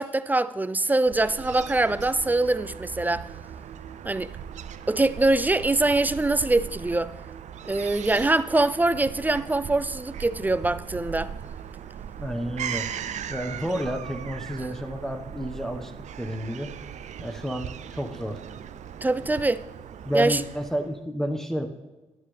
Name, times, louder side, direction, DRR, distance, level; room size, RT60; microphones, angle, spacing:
voice 1, 0.0-3.3 4.0-4.3 4.9-7.1 7.6-11.3 19.0-19.6 20.1-20.4, right 2 dB, 15° right, 0.4 m, -23 dB
Fowl / Gull seagull, 1.1-21.0, right 8 dB, 70° right, 0.5 m, -39 dB
voice 2, 12.2-12.9 13.3-15.9 16.2-16.7 17.2-18.4 20.0-21.7, equal, 5° left, 1.3 m, -30 dB
11.5 x 9.9 x 3.4 m
cardioid pair, 80°, 12 cm